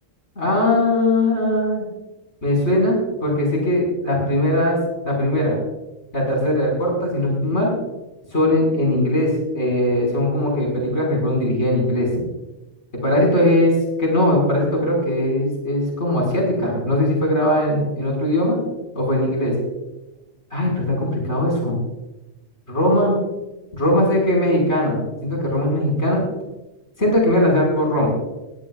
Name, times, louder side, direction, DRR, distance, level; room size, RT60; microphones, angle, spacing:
voice 1, 0.4-1.9 2.4-4.8 5.0-5.6 6.1-7.7 8.3-12.1 13.0-18.6 18.9-19.5 20.5-21.8 22.7-23.2 23.7-26.3 27.0-28.1, left 1 dB, 85° left, -1 dB, 6.0 m, -20 dB
21.0 x 16.5 x 2.5 m, 1.0 s
omnidirectional pair, 1.1 m